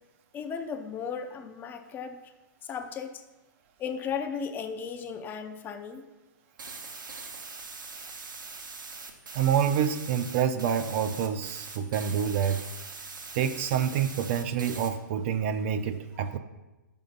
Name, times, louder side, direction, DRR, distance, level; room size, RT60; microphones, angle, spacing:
voice 1, 0.3-2.2 2.6-3.2 3.8-6.1 16.3-16.4, left 6 dB, 20° left, 7 dB, 0.4 m, -35 dB
sound 1, 6.6-14.9, right 4 dB, 80° right, 1.0 m, -42 dB
voice 2, 9.3-12.6 13.3-16.4, right 8 dB, 40° right, 10 dB, 0.5 m, -27 dB
5.6 x 5.4 x 5.3 m, 1.1 s
hypercardioid pair, 125°, 10 cm